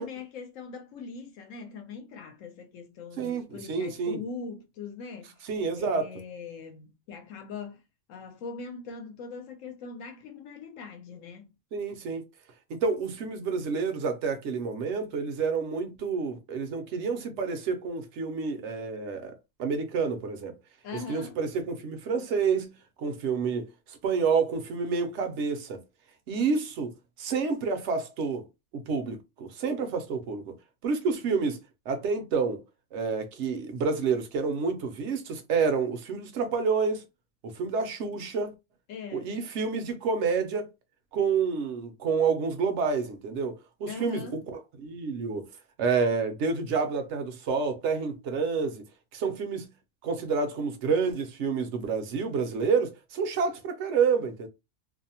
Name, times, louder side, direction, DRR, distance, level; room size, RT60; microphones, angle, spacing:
voice 1, 0.0-5.4 5.8-7.8 8.1-11.5 20.8-21.4 38.9-39.4 43.9-44.4, left 5 dB, 70° left, 0.9 m, -41 dB
voice 2, 3.2-4.2 5.4-6.1 11.7-12.2 12.7-20.6 20.9-25.8 26.3-28.4 28.7-30.6 30.8-31.6 31.9-32.6 32.9-37.0 37.4-38.5 39.1-40.7 41.1-45.5 45.8-48.8 49.1-49.7 50.0-54.5, right 5 dB, 65° right, 0.8 m, -29 dB
2.6 x 2.0 x 2.7 m
omnidirectional pair, 1.4 m